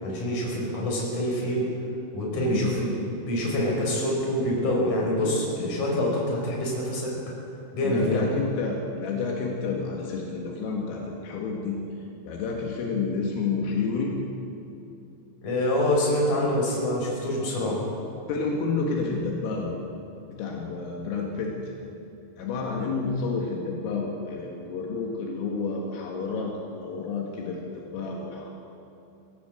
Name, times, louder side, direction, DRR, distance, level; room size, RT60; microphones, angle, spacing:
voice 1, 0.0-1.7 2.1-7.1 7.7-8.3 15.4-17.8, left 1 dB, 40° left, -2 dB, 6.5 m, -26 dB
voice 2, 2.3-2.7 7.8-11.8 12.2-14.2 18.3-19.8 20.3-21.7 22.4-28.5, left 4 dB, 80° left, -1 dB, 4.6 m, -30 dB
23.5 x 17.0 x 7.8 m, 2.8 s
omnidirectional pair, 5.9 m